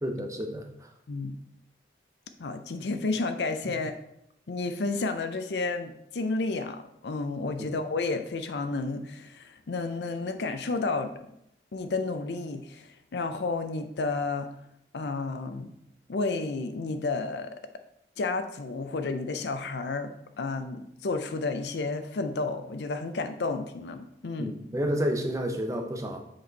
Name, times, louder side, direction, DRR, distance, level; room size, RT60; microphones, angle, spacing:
voice 1, 0.0-0.9 3.7-3.8 7.6-7.7 24.4-26.2, equal, 20° right, 3 dB, 0.7 m, -30 dB
voice 2, 2.4-3.9 4.5-11.3 11.7-14.5 14.9-15.7 16.1-17.6 18.2-24.5, left 3 dB, 75° left, 8 dB, 0.5 m, -31 dB
7.7 x 4.3 x 4.0 m, 0.77 s
head